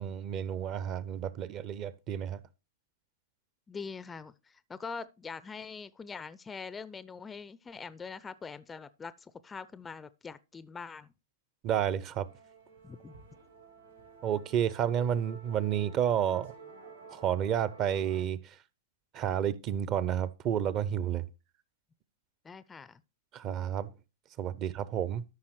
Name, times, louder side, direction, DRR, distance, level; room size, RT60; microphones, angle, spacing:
voice 1, 0.0-2.4 11.6-12.3 14.2-16.5 17.1-18.6 19.1-21.3 23.3-23.9 24.4-25.2, right 9 dB, 35° right, 0.5 m, -31 dB
voice 2, 3.7-11.1 12.8-13.1 22.4-23.0, left 5 dB, 15° left, 0.4 m, -43 dB
Musical instrument, 12.2-18.2, right 6 dB, 85° right, 4.2 m, -51 dB
13.0 x 5.5 x 3.1 m
figure-of-eight pair, 100°, 0 cm